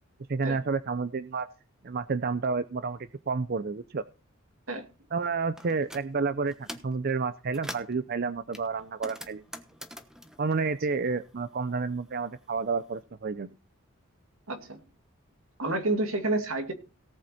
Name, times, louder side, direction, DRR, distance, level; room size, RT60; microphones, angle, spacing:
voice 1, 0.3-1.5 1.8-3.0 3.3-4.0 5.1-9.4 10.4-13.5, right 4 dB, 45° right, 13 dB, 0.5 m, -30 dB
sound 1, 5.6-6.1 6.5-7.0 7.3-8.0 8.5-11.5 11.7-12.9, equal, 5° right, 1.1 m, -44 dB
voice 2, 14.5-14.8 15.6-16.7, right 2 dB, 80° right, 6 dB, 2.4 m, -29 dB
18.0 x 7.8 x 4.2 m, 0.33 s
head